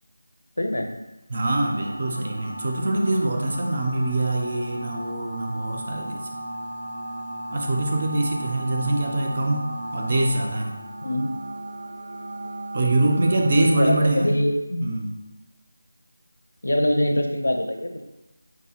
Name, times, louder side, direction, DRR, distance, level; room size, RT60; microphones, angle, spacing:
voice 1, 0.6-0.9 11.0-11.3 13.6-14.9 16.6-18.0, left 1 dB, 90° left, 4 dB, 0.5 m, -24 dB
voice 2, 1.3-6.3 7.5-10.7 12.7-14.5 14.8-15.2, right 2 dB, 30° right, 2 dB, 0.4 m, -24 dB
sound 1, 1.5-13.8, right 1 dB, 80° right, 0.5 m, -35 dB
4.6 x 2.1 x 2.8 m, 1.0 s
figure-of-eight pair, 180°, 0 cm